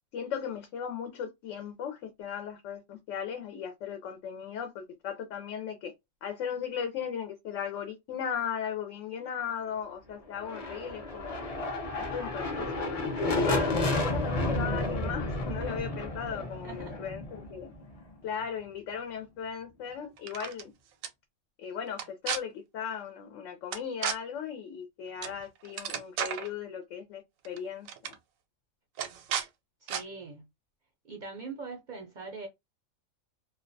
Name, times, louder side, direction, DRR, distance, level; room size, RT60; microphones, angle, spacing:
voice 1, 0.1-5.9 6.2-11.4 12.0-13.1 13.4-17.7 18.2-20.7 21.6-28.2, left 7 dB, 75° left, 0.9 m, -37 dB
sound 1, 10.3-18.1, left 2 dB, 40° left, 0.5 m, -31 dB
voice 2, 16.4-17.0 29.8-30.5 31.1-32.5, right 4 dB, 60° right, 0.5 m, -42 dB
sound 2, 20.2-20.6 21.0-21.1 21.9-22.4 23.7-24.2 25.2-25.4 25.6-26.5 27.4-27.6 27.9-28.1 29.0-29.5 29.9-30.0, right 8 dB, 90° right, 1.0 m, -33 dB
2.4 x 2.1 x 2.5 m
omnidirectional pair, 1.4 m